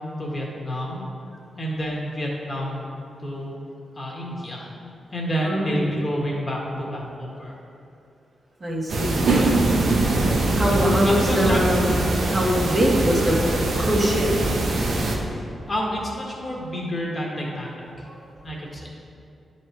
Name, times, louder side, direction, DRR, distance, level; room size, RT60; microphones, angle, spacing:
voice 1, 0.2-1.0 1.6-2.8 3.2-3.6 3.9-4.7 5.1-7.6 10.7-11.6 15.7-17.8 18.4-18.9, equal, 35° left, -3 dB, 1.6 m, -29 dB
voice 2, 5.4-5.9 8.6-9.8 10.5-11.9 12.3-13.5 13.8-14.3 18.1-18.2, equal, 40° right, -4 dB, 1.8 m, -23 dB
sound 1, 8.9-15.2, right 2 dB, 70° right, 1.0 m, -22 dB
10.0 x 4.3 x 4.6 m, 2.6 s
cardioid pair, 75°, 0 cm